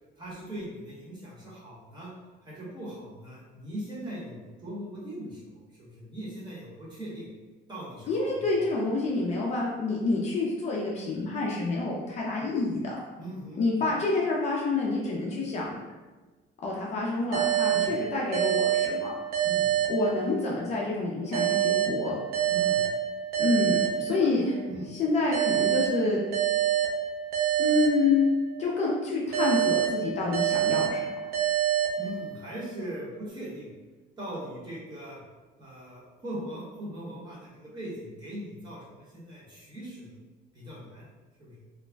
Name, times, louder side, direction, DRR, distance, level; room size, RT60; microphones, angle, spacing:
voice 1, 0.2-2.1 2.4-5.4 5.8-7.3 7.7-8.3 13.2-14.0 17.7-17.9 19.4-19.7 22.5-22.8 24.1-24.3 24.7-24.9 32.0-33.7 34.2-35.2 35.6-40.1 40.5-41.1 41.4-41.6, right 1 dB, 20° right, -7 dB, 0.8 m, -40 dB
voice 2, 8.1-13.0 13.6-15.8 16.6-19.1 19.9-22.2 23.4-24.5 24.9-26.2 27.6-28.2 28.6-31.1, left 3 dB, 35° left, -3 dB, 0.4 m, -28 dB
sound 1, 17.3-20.7 21.3-24.6 25.3-28.7 29.3-32.6, right 10 dB, 55° right, 0.5 m, -27 dB
2.4 x 2.0 x 3.3 m, 1.3 s
cardioid pair, 160°, 19 cm